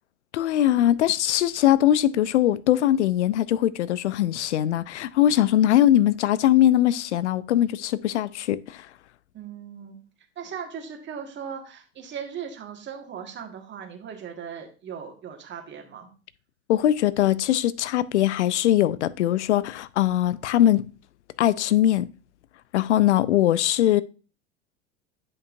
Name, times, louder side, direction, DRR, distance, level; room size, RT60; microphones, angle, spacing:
voice 1, 0.3-8.9 16.7-20.9 21.4-22.1 22.7-24.0, left 12 dB, 80° left, 0.5 m, -21 dB
voice 2, 9.3-10.0 10.3-16.1, right 7 dB, 35° right, 1.8 m, -38 dB
9.4 x 5.4 x 2.6 m
hypercardioid pair, 85°, 34 cm